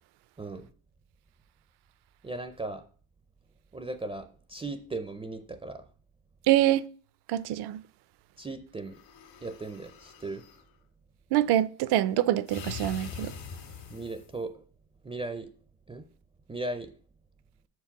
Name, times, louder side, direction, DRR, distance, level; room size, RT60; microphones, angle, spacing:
voice 1, 0.4-0.7 2.2-2.8 3.7-5.8 8.4-9.0 9.4-10.4 13.9-14.6 15.0-15.5 15.9-16.0 16.5-16.9, right 2 dB, 15° right, 0.4 m, -37 dB
voice 2, 6.5-6.8 7.3-7.8 11.3-13.3, right 13 dB, 60° right, 0.6 m, -25 dB
sound 1, 8.9-10.6 12.5-14.4, left 6 dB, 75° left, 2.2 m, -43 dB
6.5 x 4.8 x 5.8 m
supercardioid pair, 100°, 46 cm